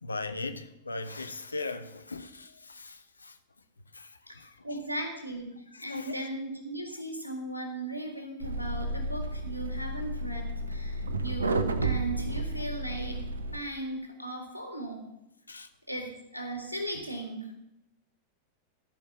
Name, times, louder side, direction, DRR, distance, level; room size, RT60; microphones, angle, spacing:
voice 1, 0.0-3.4 3.9-4.8 5.9-6.3 15.5-15.7, left 3 dB, 80° left, 0.8 m, -39 dB
voice 2, 4.6-13.2 13.5-15.0 15.9-17.5, right 1 dB, 90° right, 1.9 m, -37 dB
sound 1, 8.4-13.6, right 2 dB, 75° right, 0.8 m, -32 dB
13.5 x 5.4 x 7.3 m
figure-of-eight pair, 90°, 0 cm